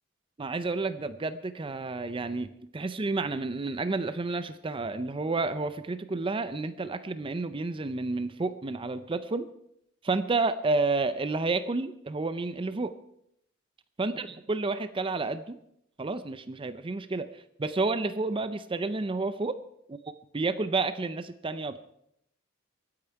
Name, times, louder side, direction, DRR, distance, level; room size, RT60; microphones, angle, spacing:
voice 1, 0.4-9.5 10.0-12.9 14.0-15.6 16.0-19.6 19.9-20.0 20.3-21.8, right 3 dB, 25° right, 12 dB, 0.5 m, -30 dB
23.0 x 8.7 x 4.6 m, 0.75 s
head